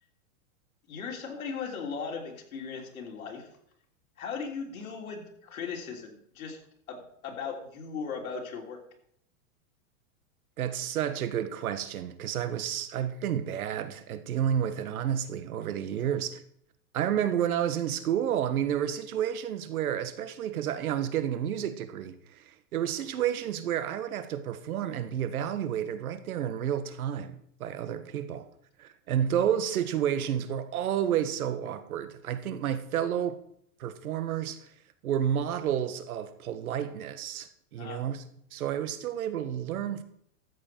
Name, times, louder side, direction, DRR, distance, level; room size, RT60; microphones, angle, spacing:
voice 1, 0.9-3.5 4.2-6.6 6.9-8.8 37.8-38.0, left 5 dB, 85° left, 3.3 m, -38 dB
voice 2, 10.6-16.4 16.9-28.5 28.8-33.4 33.8-34.7 35.0-38.2 38.5-40.0, right 9 dB, 85° right, 1.3 m, -30 dB
13.5 x 8.0 x 4.5 m
supercardioid pair, 160°, 42 cm